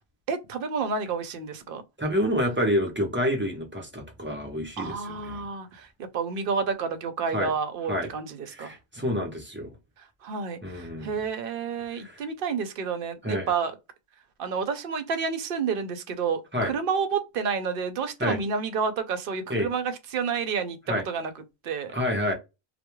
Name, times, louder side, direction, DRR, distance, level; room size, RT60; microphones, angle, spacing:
voice 1, 0.3-1.8 4.8-8.8 10.0-13.8 14.4-21.9, right 5 dB, 65° right, 0.7 m, -30 dB
voice 2, 2.0-5.0 5.2-5.4 7.3-7.5 7.9-8.1 8.6-9.7 10.6-11.2 12.0-12.2 13.2-13.5 16.5-16.7 18.2-18.4 19.5-19.7 20.9-21.0 21.9-22.3, equal, 15° right, 0.5 m, -28 dB
2.3 x 2.1 x 2.9 m
omnidirectional pair, 1.0 m